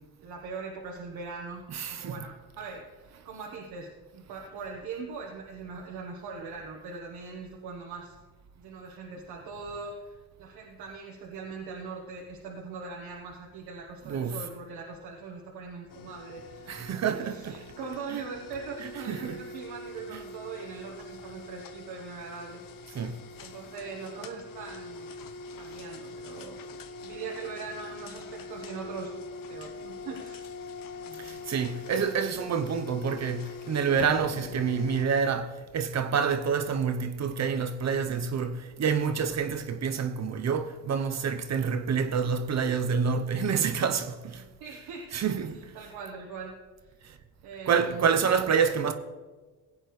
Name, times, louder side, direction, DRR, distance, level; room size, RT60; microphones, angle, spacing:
voice 1, 0.0-1.6 1.9-8.1 8.6-16.7 17.0-22.6 23.4-25.1 25.6-26.6 27.0-29.2 29.5-30.5 31.0-31.3 44.6-45.1 45.5-46.5 46.8-46.9 47.4-48.3, right 4 dB, 80° right, 1.3 m, -41 dB
voice 2, 1.7-2.2 14.1-14.4 16.7-17.6 18.1-18.2 19.1-19.4 22.9-23.2 31.2-44.5 45.1-45.7 47.0-47.1 47.7-48.9, right 6 dB, 45° right, 0.8 m, -28 dB
sound 1, 15.9-35.1, left 4 dB, 65° left, 0.8 m, -43 dB
16.5 x 8.8 x 3.2 m
cardioid pair, 95°, 37 cm